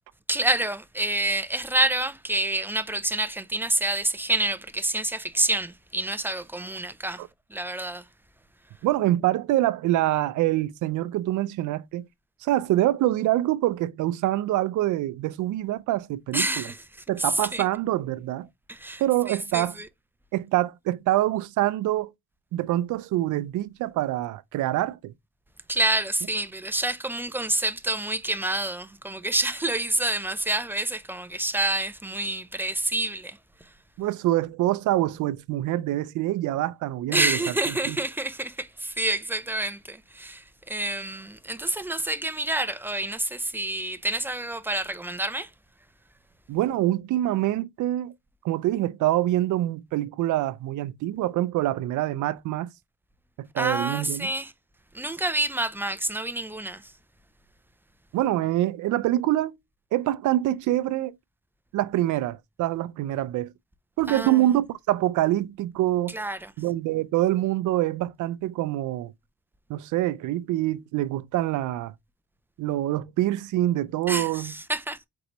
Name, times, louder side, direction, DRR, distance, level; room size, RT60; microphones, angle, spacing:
voice 1, 0.3-7.2 7.5-8.1 16.3-17.6 18.7-19.0 19.3-19.9 25.7-33.7 37.1-45.5 53.6-54.5 54.9-56.9 64.1-64.4 66.1-66.5 74.1-75.1, right 2 dB, 5° right, 0.5 m, -28 dB
voice 2, 8.8-12.1 12.4-16.7 17.1-18.5 19.0-19.7 20.3-22.1 22.5-25.1 34.0-37.4 37.9-38.0 46.5-48.1 48.4-52.7 53.4-54.3 58.1-59.6 59.9-61.1 61.7-63.5 64.0-66.1 66.6-69.1 69.7-71.9 72.6-74.5, right 14 dB, 80° right, 0.5 m, -25 dB
4.6 x 3.9 x 3.0 m
cardioid pair, 90°, 30 cm